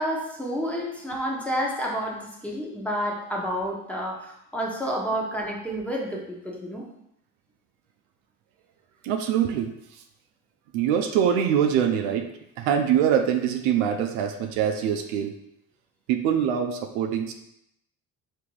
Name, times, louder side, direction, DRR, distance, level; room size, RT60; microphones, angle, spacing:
voice 1, 0.0-6.9, equal, 5° left, -2 dB, 1.1 m, -30 dB
voice 2, 9.0-9.7 10.7-12.3 12.6-15.3 16.1-17.3, right 8 dB, 85° right, 6 dB, 0.6 m, -24 dB
3.7 x 2.9 x 4.6 m, 0.78 s
supercardioid pair, 85°, 38 cm